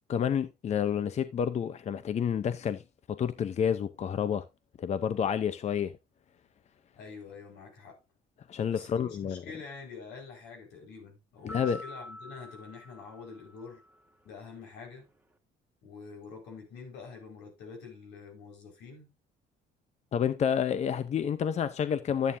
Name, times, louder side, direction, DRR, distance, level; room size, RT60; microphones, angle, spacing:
voice 1, 0.1-2.8 3.1-4.4 4.8-5.9 8.5-9.4 11.4-11.8 20.1-22.4, left 8 dB, 40° left, 0.7 m, -29 dB
voice 2, 7.0-8.0 8.7-13.8 14.2-15.1 15.8-19.1, left 5 dB, 90° left, 5.0 m, -46 dB
sound 1, 11.5-14.0, left 1 dB, 10° right, 1.9 m, -46 dB
11.0 x 9.1 x 2.7 m
cardioid pair, 110°, 17 cm